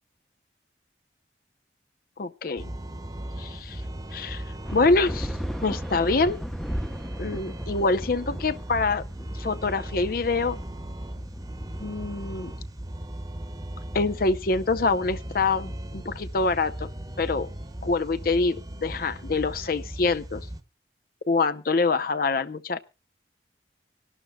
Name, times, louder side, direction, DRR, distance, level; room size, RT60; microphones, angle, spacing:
voice 1, 2.2-2.7 3.4-3.8 4.1-4.4 4.7-5.3 5.6-6.4 7.2-9.0 9.4-10.6 11.8-12.5 13.9-16.9 17.2-17.5 17.8-20.5 21.3-22.8, left 3 dB, 50° left, 0.6 m, -25 dB
sound 1, 2.6-20.6, right 1 dB, 20° right, 1.1 m, -37 dB
sound 2, 4.7-14.6, equal, ahead, 0.7 m, -38 dB
sound 3, 7.0-20.1, right 2 dB, 80° left, 1.8 m, -56 dB
25.0 x 12.0 x 2.2 m
head